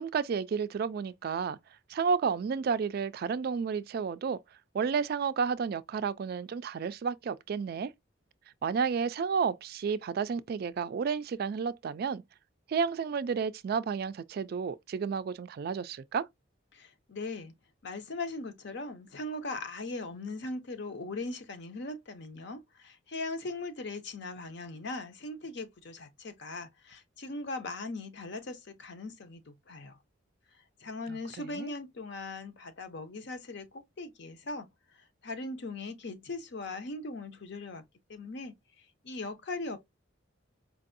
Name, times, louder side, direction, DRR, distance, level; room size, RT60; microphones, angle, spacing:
voice 1, 0.0-1.6 1.9-4.4 4.7-7.9 8.6-12.2 12.7-16.3 31.1-31.7, right 6 dB, 50° right, 0.3 m, -31 dB
voice 2, 16.7-17.5 17.8-30.0 30.8-34.7 35.2-37.8 38.1-39.8, left 2 dB, 60° left, 0.7 m, -39 dB
4.6 x 2.6 x 2.5 m
head